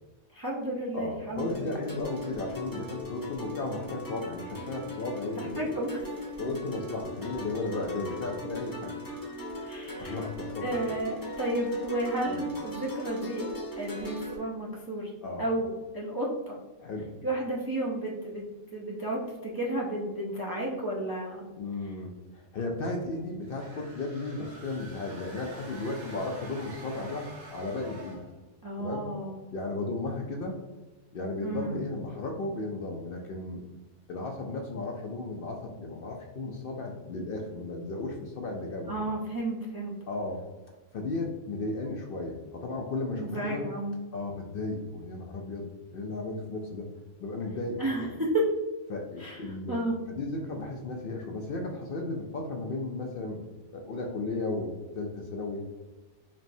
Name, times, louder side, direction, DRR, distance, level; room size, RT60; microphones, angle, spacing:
voice 1, 0.3-1.8 5.4-6.0 9.6-10.2 10.6-13.4 13.8-15.1 15.4-16.6 17.2-21.5 28.6-29.4 31.4-31.8 38.9-39.9 43.2-44.0 47.8-48.4 49.2-49.4 49.7-50.0, right 1 dB, 30° right, -4 dB, 0.4 m, -32 dB
voice 2, 0.9-5.7 6.4-8.9 10.0-10.9 12.3-12.5 15.2-15.5 16.8-17.1 21.6-28.2 28.8-29.1 29.5-30.6 31.1-33.6 34.1-39.0 40.1-40.4 40.9-43.7 44.1-46.9 47.2-48.1 48.9-53.4 53.7-55.6, left 2 dB, 60° left, 1 dB, 0.6 m, -35 dB
sound 1, 1.4-14.4, left 1 dB, 20° left, 0.7 m, -39 dB
sound 2, 23.4-28.4, right 2 dB, 60° right, 1.3 m, -47 dB
4.3 x 3.1 x 2.6 m, 1.2 s
omnidirectional pair, 1.3 m